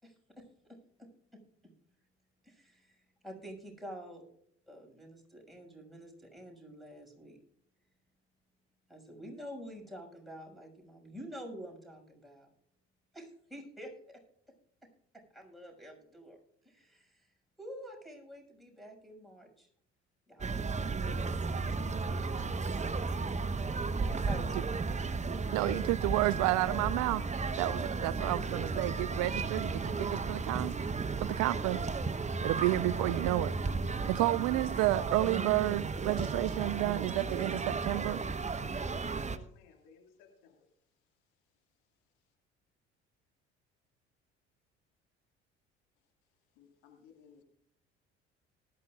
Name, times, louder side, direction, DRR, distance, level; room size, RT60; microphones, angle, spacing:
voice 1, 0.0-1.7 2.4-3.0 3.2-4.3 4.7-7.4 8.9-12.5 13.1-14.2 15.1-16.4 16.6-17.3 17.6-19.7 20.3-22.7 24.2-25.5, equal, ahead, 2 dB, 6.4 m, -49 dB
sound 1, 20.4-39.4, right 4 dB, 20° right, 1.0 m, -34 dB
voice 2, 25.5-27.2 27.6-30.8 31.2-31.8 32.4-33.5 34.1-38.2, right 18 dB, 55° right, 19 dB, 0.5 m, -31 dB
voice 3, 39.3-40.7 46.6-47.4, left 6 dB, 65° left, 4 dB, 2.4 m, -59 dB
19.5 x 13.0 x 2.5 m, 0.69 s
figure-of-eight pair, 55°, 34 cm